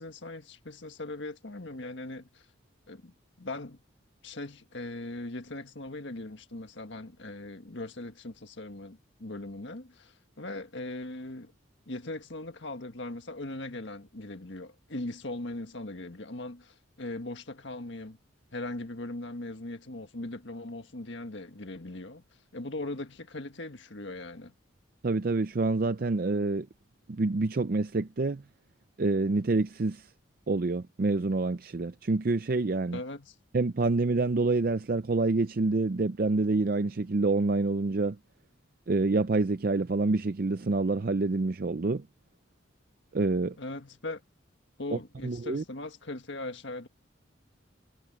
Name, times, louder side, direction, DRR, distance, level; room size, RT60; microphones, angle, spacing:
voice 1, 0.0-2.4 2.9-3.8 4.2-11.5 11.9-18.2 18.5-22.2 22.5-24.5 32.9-33.3 43.6-44.2 44.8-46.9, left 2 dB, 65° left, 1.6 m, -39 dB
voice 2, 25.0-26.7 27.1-28.4 29.0-30.1 30.5-33.0 33.5-38.2 38.9-42.0 43.1-43.6 44.9-45.6, right 3 dB, 45° right, 0.5 m, -27 dB
head